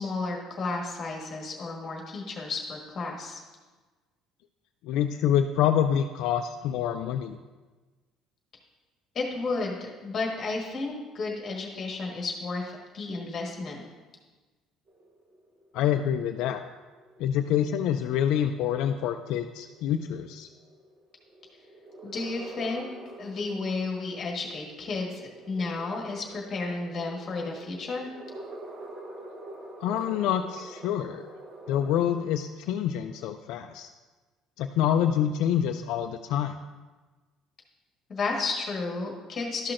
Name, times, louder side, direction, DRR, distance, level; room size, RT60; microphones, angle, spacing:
voice 1, 0.0-3.4 9.1-13.8 22.0-22.8 23.2-28.1 38.1-39.7, left 3 dB, 25° left, -1 dB, 1.4 m, -32 dB
voice 2, 4.8-7.4 15.7-16.6 17.2-20.5 29.8-31.2 31.7-33.9 34.6-36.6, left 9 dB, 65° left, 6 dB, 0.3 m, -26 dB
sound 1, 14.9-32.2, right 2 dB, 35° right, 0.9 m, -47 dB
12.0 x 5.8 x 2.5 m, 1.3 s
cardioid pair, 170°, 0 cm